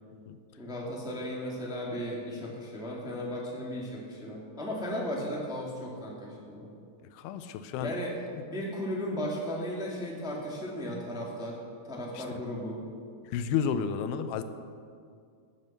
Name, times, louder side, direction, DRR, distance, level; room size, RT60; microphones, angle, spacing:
voice 1, 0.6-6.7 7.8-8.1 8.4-11.6 11.8-12.8, equal, ahead, -3 dB, 1.3 m, -35 dB
voice 2, 7.1-7.9 12.2-12.3 13.3-14.4, left 7 dB, 90° left, 10 dB, 2.8 m, -31 dB
18.0 x 7.6 x 6.7 m, 2.3 s
omnidirectional pair, 4.5 m